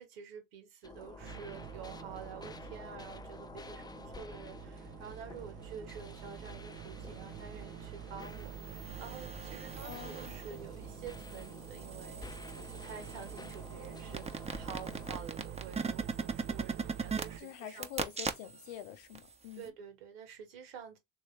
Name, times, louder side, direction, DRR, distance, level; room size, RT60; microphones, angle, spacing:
voice 1, 0.0-12.3 12.5-17.9 19.6-21.0, right 7 dB, 85° right, 1.6 m, -49 dB
sound 1, 0.8-15.2, left 3 dB, 15° left, 0.5 m, -51 dB
sound 2, 1.2-17.4, right 10 dB, 60° right, 0.7 m, -47 dB
sound 3, 8.6-10.6 11.0-18.8 19.2-19.3, right 4 dB, 20° right, 0.9 m, -40 dB
voice 2, 9.8-10.4 17.4-19.7, left 11 dB, 80° left, 0.7 m, -46 dB
3.3 x 2.9 x 3.2 m
hypercardioid pair, 70°, 29 cm